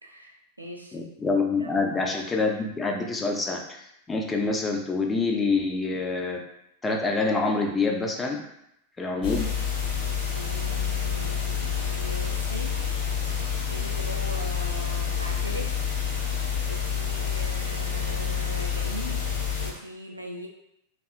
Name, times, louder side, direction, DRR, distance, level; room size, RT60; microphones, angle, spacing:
voice 1, 0.0-1.0 1.6-1.8 10.3-12.8 13.6-15.8 16.7-19.3 19.6-20.5, right 1 dB, 85° right, 1 dB, 0.3 m, -40 dB
voice 2, 0.9-3.8 4.1-6.4 6.8-8.4 9.0-9.5, left 3 dB, 15° left, 1 dB, 0.4 m, -26 dB
sound 1, 9.2-19.7, left 7 dB, 55° left, 1.0 m, -28 dB
2.7 x 2.3 x 2.3 m, 0.79 s
figure-of-eight pair, 90°, 0 cm